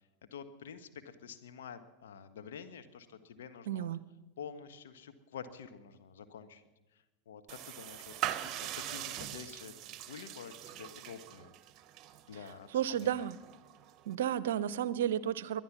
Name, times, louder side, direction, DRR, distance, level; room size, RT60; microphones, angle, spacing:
voice 1, 0.3-3.9 4.4-6.6 6.9-8.1 8.4-11.6 12.3-13.3, left 7 dB, 70° left, 8 dB, 1.4 m, -48 dB
voice 2, 3.7-4.0 12.7-13.4 14.1-15.6, right 10 dB, 70° right, 18 dB, 0.6 m, -32 dB
sound 1, 7.5-14.1, right 12 dB, 40° right, 1.0 m, -42 dB
21.5 x 11.0 x 6.2 m, 1.1 s
figure-of-eight pair, 90°, 0 cm